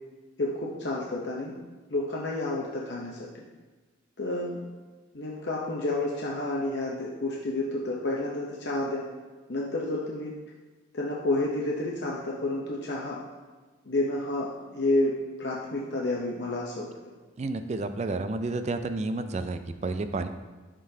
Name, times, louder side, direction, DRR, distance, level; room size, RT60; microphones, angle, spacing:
voice 1, 0.4-1.5 1.9-3.2 4.2-4.6 5.1-9.1 9.5-10.3 10.9-13.2 13.9-16.9, left 2 dB, 60° left, -3 dB, 0.7 m, -30 dB
voice 2, 17.4-20.3, right 3 dB, 35° right, 9 dB, 0.3 m, -30 dB
11.0 x 3.8 x 2.7 m, 1.3 s
head